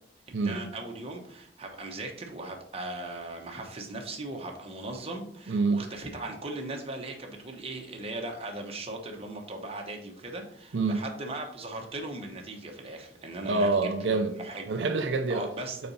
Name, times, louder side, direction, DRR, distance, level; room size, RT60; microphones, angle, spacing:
voice 1, 0.4-13.7 14.4-14.6 15.3-15.8, right 2 dB, 35° right, 1.0 m, -38 dB
voice 2, 5.5-5.8 10.7-11.0 13.4-14.4 14.7-15.5, right 3 dB, 80° right, 0.5 m, -26 dB
4.3 x 4.1 x 5.4 m
head